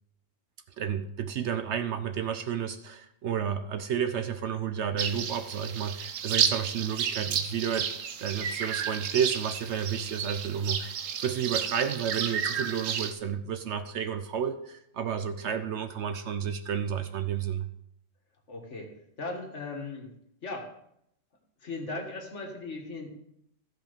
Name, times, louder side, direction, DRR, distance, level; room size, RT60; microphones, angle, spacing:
voice 1, 0.8-7.9 8.2-17.7, right 8 dB, 65° right, 9 dB, 0.9 m, -31 dB
sound 1, 5.0-13.1, right 7 dB, 85° right, 1.2 m, -32 dB
voice 2, 18.5-18.9 19.2-20.1 20.4-20.7 21.6-23.1, left 3 dB, 65° left, 1 dB, 2.0 m, -37 dB
14.5 x 5.2 x 5.1 m, 0.74 s
omnidirectional pair, 1.3 m